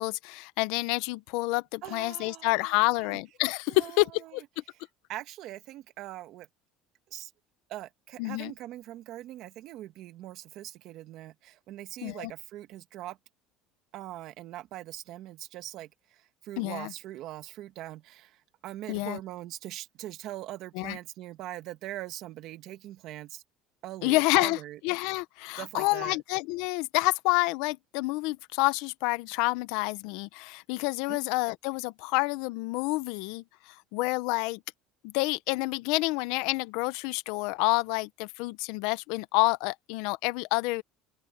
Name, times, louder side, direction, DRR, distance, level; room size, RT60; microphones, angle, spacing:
voice 1, 0.0-4.6 8.2-8.5 12.0-12.3 16.6-16.9 18.9-19.2 20.7-21.0 24.0-34.6 35.0-40.8, left 22 dB, 75° left, 0.8 m, -28 dB
voice 2, 1.8-3.2 3.7-4.4 5.1-6.5 7.1-7.3 7.7-13.2 13.9-23.4 23.8-24.8 25.6-26.2 31.1-31.2, right 14 dB, 55° right, 1.7 m, -42 dB
open air
cardioid pair, 150°, 0 cm